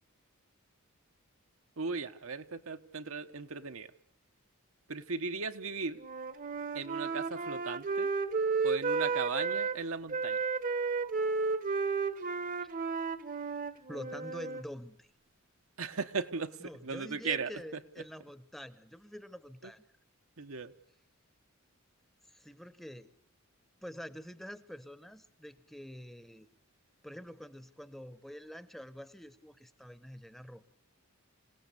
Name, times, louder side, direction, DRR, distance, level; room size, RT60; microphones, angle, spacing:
voice 1, 1.8-3.9 4.9-6.0 6.7-8.1 8.6-10.4 15.8-16.6 16.8-17.5 20.4-20.7, right 4 dB, 75° right, 7 dB, 1.2 m, -37 dB
Wind instrument woodwind instrument, 6.0-9.8 10.1-14.6, right 4 dB, 40° right, 1.0 m, -33 dB
voice 2, 13.9-15.1 16.6-19.9 22.3-23.1 23.8-26.5 27.0-30.7, equal, ahead, 14 dB, 0.9 m, -46 dB
27.0 x 17.5 x 8.4 m, 0.62 s
head